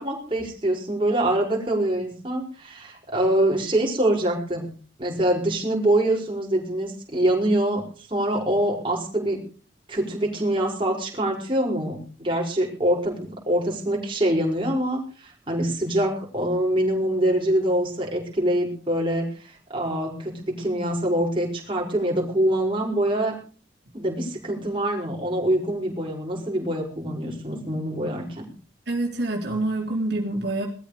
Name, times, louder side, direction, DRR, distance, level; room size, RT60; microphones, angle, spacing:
voice 1, 0.0-4.7 5.0-7.8 8.1-9.4 9.9-23.3 23.9-28.5, right 1 dB, 25° right, -1 dB, 5.2 m, -24 dB
voice 2, 28.9-30.7, right 2 dB, 60° right, -1 dB, 3.7 m, -26 dB
20.0 x 13.5 x 5.1 m, 0.41 s
head